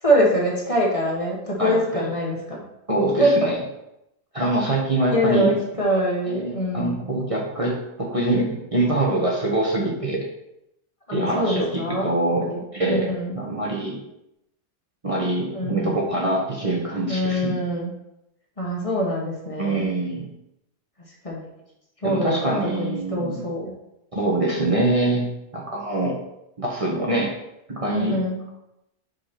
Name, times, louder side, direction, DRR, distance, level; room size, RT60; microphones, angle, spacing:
voice 1, 0.0-2.6 3.2-3.5 5.1-7.0 11.1-12.1 12.4-13.4 15.5-16.0 17.1-17.9 18.6-19.9 21.2-21.4 22.0-23.7 27.9-28.4, equal, 30° left, -3 dB, 1.2 m, -24 dB
voice 2, 1.6-2.0 2.9-3.6 4.3-5.5 6.3-10.3 11.1-12.4 12.7-14.0 15.0-17.6 19.6-20.2 22.0-23.5 24.1-26.2 26.6-27.3 27.7-28.2, right 2 dB, 30° right, -3 dB, 1.0 m, -24 dB
5.2 x 4.6 x 4.4 m, 0.85 s
omnidirectional pair, 1.2 m